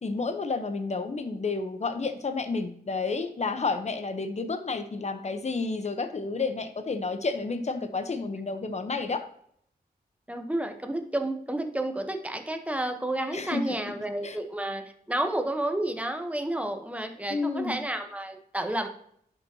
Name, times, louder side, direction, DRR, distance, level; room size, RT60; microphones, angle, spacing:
voice 1, 0.0-9.2 13.3-13.9 14.2-14.4 17.3-17.8, left 4 dB, 45° left, 8 dB, 0.9 m, -30 dB
voice 2, 10.3-18.9, right 1 dB, 10° right, 6 dB, 1.0 m, -31 dB
11.0 x 5.9 x 2.9 m, 0.68 s
wide cardioid pair, 105°, 16 cm